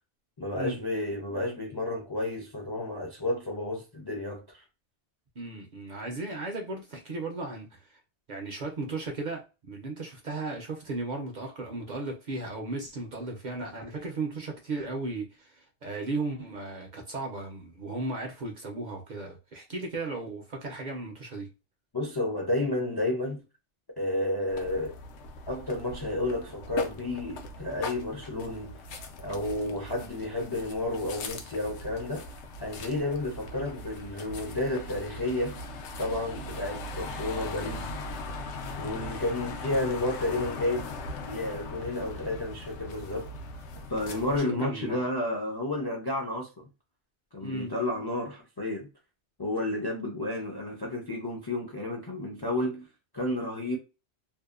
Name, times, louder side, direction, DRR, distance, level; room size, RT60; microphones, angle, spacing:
voice 1, 0.4-4.6 21.9-23.4 24.0-25.0 25.5-28.8 29.2-32.3 32.6-35.6 36.0-37.9 38.8-43.3 43.9-46.6 47.3-48.9 49.4-52.9 53.1-53.8, left 2 dB, 40° left, 0.3 m, -31 dB
voice 2, 5.4-8.0 8.3-21.5 44.0-45.0 47.4-47.7, right 2 dB, 55° right, 0.6 m, -36 dB
sound 1, 24.5-44.4, left 2 dB, 85° left, 0.9 m, -40 dB
2.6 x 2.1 x 2.3 m
omnidirectional pair, 1.2 m